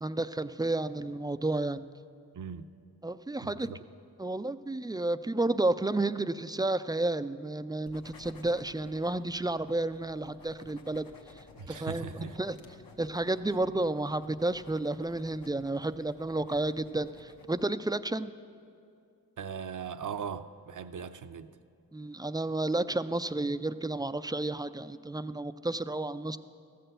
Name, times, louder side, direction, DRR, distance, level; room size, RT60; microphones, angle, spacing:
voice 1, 0.0-1.8 3.0-3.7 4.2-11.1 11.7-12.6 13.0-18.3 21.9-26.4, right 2 dB, 10° right, 12 dB, 0.3 m, -31 dB
voice 2, 2.3-2.7 3.4-3.8 11.6-12.4 19.4-21.5, right 7 dB, 55° right, 11 dB, 0.6 m, -39 dB
sound 1, 7.8-17.6, left 4 dB, 65° left, 1.1 m, -54 dB
14.0 x 6.8 x 7.8 m, 2.4 s
cardioid pair, 45°, 37 cm